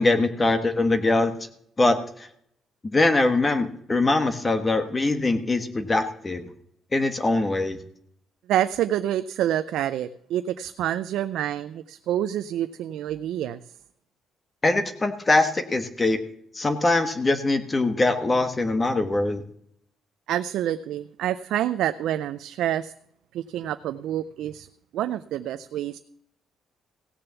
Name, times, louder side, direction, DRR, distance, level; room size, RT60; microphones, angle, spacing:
voice 1, 0.0-1.3 1.8-2.3 2.9-6.4 6.9-7.8 14.6-16.2 16.5-19.4, left 2 dB, 25° left, 9 dB, 1.4 m, -22 dB
voice 2, 8.5-13.6 20.3-22.9 23.3-24.7 24.9-26.0, right 11 dB, 85° right, 11 dB, 0.4 m, -27 dB
16.5 x 6.8 x 6.9 m, 0.68 s
cardioid pair, 90°, 0 cm